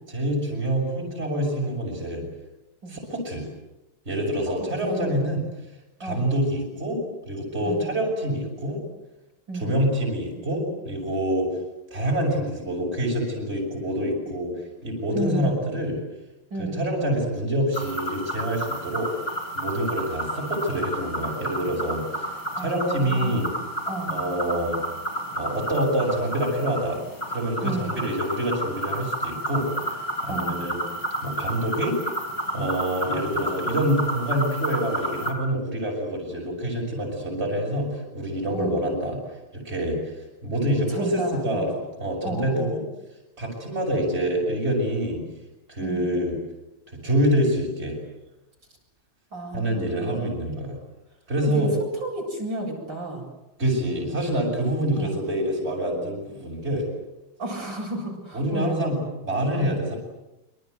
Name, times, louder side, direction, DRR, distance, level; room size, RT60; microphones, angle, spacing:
voice 1, 0.1-2.2 2.9-3.5 4.1-5.4 6.0-8.8 9.5-11.5 11.9-16.0 16.6-19.1 19.6-23.5 24.1-24.8 25.3-27.0 27.3-30.0 30.2-30.8 31.2-32.0 32.5-39.2 39.5-40.2 40.4-41.7 42.0-42.8 43.4-45.2 45.7-46.4 46.9-48.0 49.5-50.8 51.3-51.7 53.6-56.8 58.3-60.0, equal, 30° right, 0 dB, 7.0 m, -26 dB
voice 2, 7.6-7.9 9.5-9.8 15.1-15.6 16.5-16.8 22.5-23.5 23.8-24.2 27.6-28.0 30.3-30.6 38.5-38.8 40.9-41.7 42.2-42.8 45.8-46.1 49.3-50.3 51.4-53.3 54.9-55.2 57.4-58.8 59.6-59.8, right 2 dB, 60° right, -1 dB, 8.5 m, -32 dB
sound 1, 17.7-35.3, right 1 dB, 55° left, 6.3 m, -31 dB
26.0 x 25.5 x 8.1 m, 0.96 s
omnidirectional pair, 2.3 m